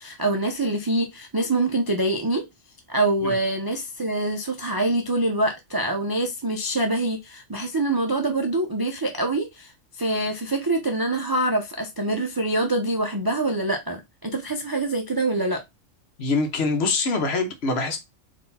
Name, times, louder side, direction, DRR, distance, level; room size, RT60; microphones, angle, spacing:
voice 1, 0.0-2.4 2.9-9.7 10.0-15.6, right 2 dB, 35° right, 0.4 m, -25 dB
voice 2, 16.2-18.0, left 3 dB, 60° left, 1.1 m, -24 dB
3.9 x 2.7 x 4.0 m
omnidirectional pair, 1.3 m